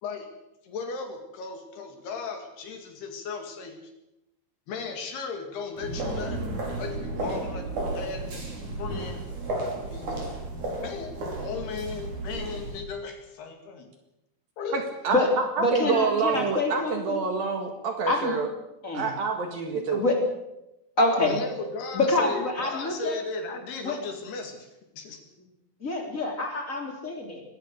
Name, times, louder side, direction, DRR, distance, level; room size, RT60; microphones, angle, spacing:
voice 1, 0.6-3.8 4.7-6.5 6.8-8.5 8.8-9.2 9.6-10.2 10.8-13.9 14.6-14.9 15.8-16.0 21.1-24.7 24.9-25.2, left 4 dB, 60° left, 5 dB, 4.1 m, -36 dB
sound 1, 5.8-12.8, right 2 dB, 40° right, 6.5 m, -33 dB
voice 2, 14.7-15.2 15.7-18.5 18.9-20.0, right 4 dB, 60° right, 5 dB, 3.1 m, -27 dB
voice 3, 15.6-17.2 18.1-18.4 18.8-19.1 19.9-20.2 21.0-21.4 21.9-23.2 23.8-24.0 25.8-27.4, left 2 dB, 20° left, 2 dB, 3.3 m, -26 dB
22.5 x 18.5 x 6.7 m, 0.91 s
omnidirectional pair, 5.4 m